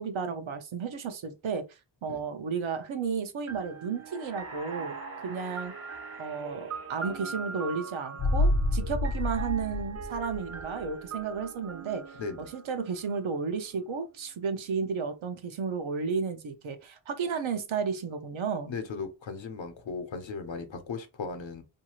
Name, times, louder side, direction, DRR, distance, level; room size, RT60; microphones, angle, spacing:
voice 1, 0.0-1.6 2.0-5.7 6.2-18.7, right 5 dB, 85° right, 0.6 m, -33 dB
sound 1, 3.5-13.3, right 5 dB, 35° right, 0.4 m, -42 dB
sound 2, 3.9-7.8, right 2 dB, 50° right, 0.8 m, -47 dB
sound 3, 8.2-10.9 11.2-11.3, left 2 dB, 40° left, 0.4 m, -28 dB
voice 2, 18.7-21.6, left 4 dB, 75° left, 0.8 m, -37 dB
2.7 x 2.3 x 2.9 m
wide cardioid pair, 75°, 46 cm